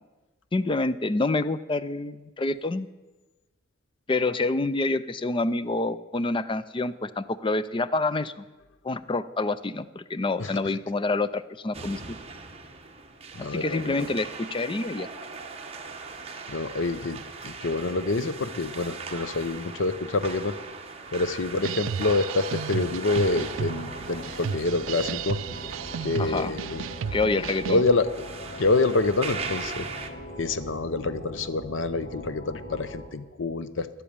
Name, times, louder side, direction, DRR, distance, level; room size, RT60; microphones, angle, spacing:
voice 1, 0.5-2.9 4.1-8.4 8.8-12.2 13.4-15.1 26.2-26.5 27.1-27.8, left 2 dB, 25° left, 14 dB, 0.5 m, -27 dB
sound 1, 11.7-30.1, right 4 dB, 30° right, 1.1 m, -40 dB
voice 2, 13.3-14.1 16.5-20.5 21.1-25.4 26.0-26.8 27.6-28.1 28.6-30.1 30.4-34.0, left 3 dB, 75° left, 13 dB, 0.8 m, -27 dB
sound 2, 21.6-27.9, right 7 dB, 90° right, 0.4 m, -34 dB
sound 3, 23.1-33.1, left 1 dB, 55° left, 2.7 m, -41 dB
11.5 x 8.5 x 8.8 m, 1.1 s
head